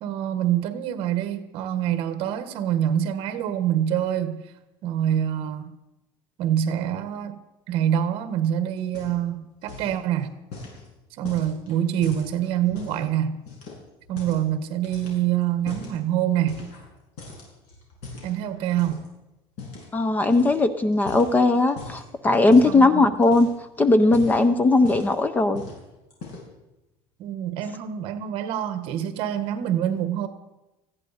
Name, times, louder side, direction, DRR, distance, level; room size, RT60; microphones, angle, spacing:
voice 1, 0.0-4.4 4.8-5.7 6.4-7.4 7.7-10.3 11.2-13.4 14.1-16.7 18.2-19.0 22.6-23.1 27.2-30.3, right 10 dB, 50° right, 1.4 m, -25 dB
sound 1, 8.8-9.4 9.6-10.0 10.5-13.0 13.5-14.5 14.8-16.0 16.5-16.9 17.2-19.1 19.6-19.9 20.3-20.6 20.9-22.1 22.5-22.8 23.2-23.7 24.0-25.2 25.5-25.8 26.1-26.6, left 3 dB, 65° left, 6.4 m, -40 dB
voice 2, 19.9-23.5 23.8-25.6, left 2 dB, 15° left, 0.5 m, -19 dB
19.5 x 15.0 x 4.2 m
cardioid pair, 180°, 12 cm